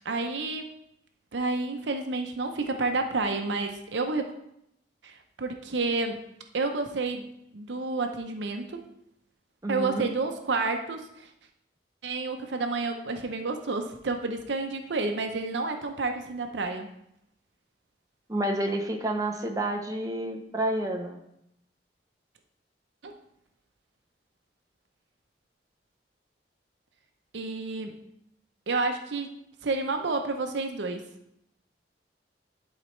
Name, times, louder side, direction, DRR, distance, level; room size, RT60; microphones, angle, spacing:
voice 1, 0.0-0.7 1.3-4.3 5.0-6.2 6.5-7.3 7.5-8.8 9.7-11.3 12.0-16.9 23.0-23.2 27.3-27.9 28.7-29.3 29.6-31.0, right 3 dB, 85° right, 6 dB, 0.6 m, -30 dB
voice 2, 9.6-10.1 18.3-21.2, right 1 dB, 20° right, 2 dB, 0.6 m, -29 dB
11.5 x 4.0 x 3.1 m, 0.79 s
head